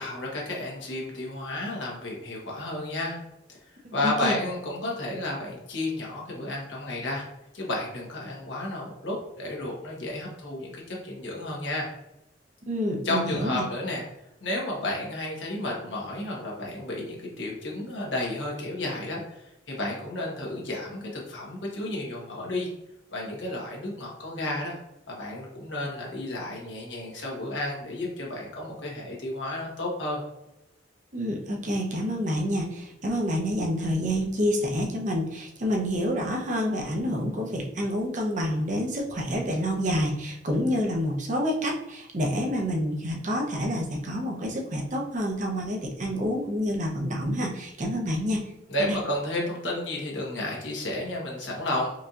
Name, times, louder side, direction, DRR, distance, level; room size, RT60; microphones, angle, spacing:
voice 1, 0.0-3.2 3.9-7.3 7.5-11.9 13.0-14.0 14.4-19.4 19.7-22.7 23.1-24.8 25.1-30.2 48.7-51.9, left 1 dB, 90° left, -2 dB, 1.3 m, -32 dB
voice 2, 4.0-4.4 12.7-13.6 31.1-48.4 48.9-49.0, equal, 45° right, 0 dB, 0.7 m, -28 dB
4.5 x 2.8 x 2.5 m, 0.87 s
head